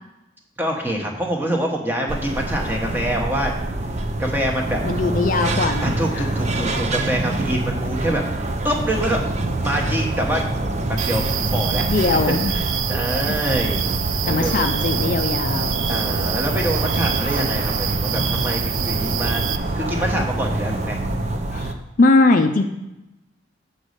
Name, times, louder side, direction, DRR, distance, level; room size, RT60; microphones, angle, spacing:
voice 1, 0.6-3.5 4.2-4.8 5.8-10.8 11.0-11.2 11.5-11.8 12.1-13.8 14.2-14.7 15.9-19.4 19.7-21.0, equal, 10° right, 0 dB, 1.0 m, -25 dB
sound 1, 2.1-21.7, right 2 dB, 35° right, 0.6 m, -25 dB
voice 2, 4.8-6.3 11.9-12.5 13.2-13.3 14.3-15.9 21.5-22.7, left 3 dB, 45° left, 6 dB, 0.4 m, -20 dB
sound 2, 11.0-19.6, right 8 dB, 85° right, 0.5 m, -26 dB
7.9 x 4.1 x 6.4 m, 0.93 s
head